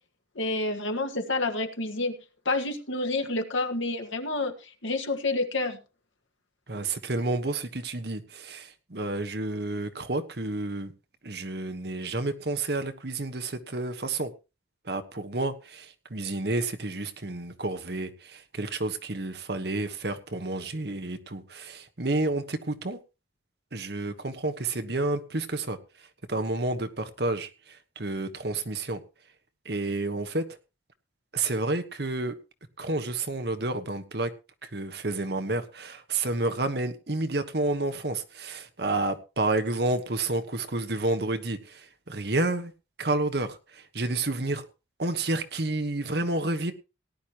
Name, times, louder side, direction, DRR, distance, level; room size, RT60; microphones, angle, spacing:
voice 1, 0.4-2.2 2.5-4.5 4.8-5.8, left 2 dB, 90° left, 5 dB, 1.8 m, -28 dB
voice 2, 6.7-10.9 11.2-14.3 14.8-23.0 23.7-25.8 26.3-29.0 29.6-30.5 31.3-32.4 32.8-34.3 34.6-42.7 43.0-44.6 45.0-46.7, right 2 dB, 55° right, 9 dB, 1.3 m, -30 dB
18.0 x 10.5 x 3.0 m, 0.29 s
head